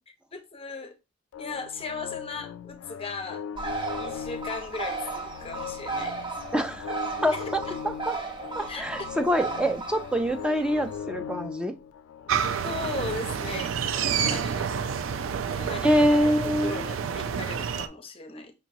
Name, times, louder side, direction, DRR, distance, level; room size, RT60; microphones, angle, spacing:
voice 1, 0.3-1.0 1.4-3.5 4.0-6.2 7.3-7.7 8.7-9.4 12.6-13.7 14.1-14.7 15.5-16.0 16.4-18.5, left 4 dB, 30° left, 0.7 m, -37 dB
sound 1, 1.3-15.4, left 8 dB, 85° left, 0.3 m, -40 dB
Bird, 3.6-11.0, right 4 dB, 25° right, 0.7 m, -35 dB
voice 2, 6.5-7.0 7.2-7.4 7.8-8.2 8.5-11.7 15.8-16.8, equal, 5° right, 0.3 m, -25 dB
sound 2, 12.3-17.9, right 7 dB, 75° right, 0.4 m, -29 dB
5.1 x 2.9 x 2.7 m
head